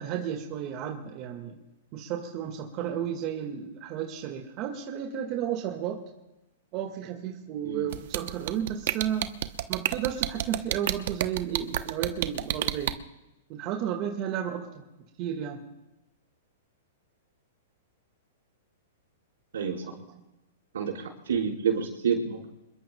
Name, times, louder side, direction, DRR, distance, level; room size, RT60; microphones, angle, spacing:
voice 1, 0.0-1.6 1.9-6.0 6.7-9.3 9.7-13.0 13.5-14.8 15.2-15.6 20.1-20.2, right 9 dB, 40° right, 3 dB, 1.8 m, -33 dB
sound 1, 7.9-12.9, right 13 dB, 60° right, 0.9 m, -28 dB
voice 2, 20.7-22.5, right 6 dB, 85° right, 0 dB, 4.7 m, -28 dB
27.0 x 21.5 x 2.3 m, 0.97 s
hypercardioid pair, 135°, 0 cm